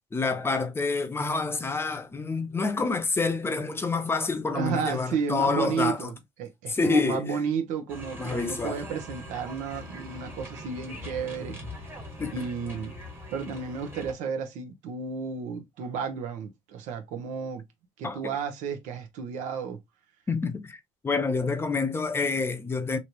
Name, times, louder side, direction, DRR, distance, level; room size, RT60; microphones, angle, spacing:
voice 1, 0.0-6.1 6.7-7.4 8.2-8.8 12.2-12.5 18.0-18.3 20.3-23.0, left 4 dB, 20° left, 0.6 m, -28 dB
voice 2, 4.5-6.1 6.4-11.9 12.3-13.0 13.3-17.6 18.0-19.8, right 6 dB, 85° right, 0.8 m, -32 dB
sound 1, 7.9-14.1, left 1 dB, 15° right, 1.2 m, -42 dB
3.1 x 2.7 x 2.9 m
cardioid pair, 125°, 13 cm